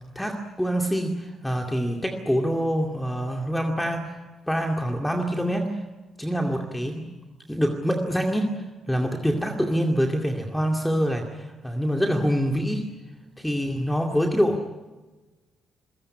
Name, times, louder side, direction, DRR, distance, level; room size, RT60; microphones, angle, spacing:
voice 1, 0.2-4.2 4.5-5.8 6.2-7.0 7.5-8.5 8.9-12.9 13.4-14.7, equal, 5° left, 2 dB, 2.3 m, -25 dB
28.0 x 17.0 x 9.7 m, 1.2 s
cardioid pair, 90°, 0 cm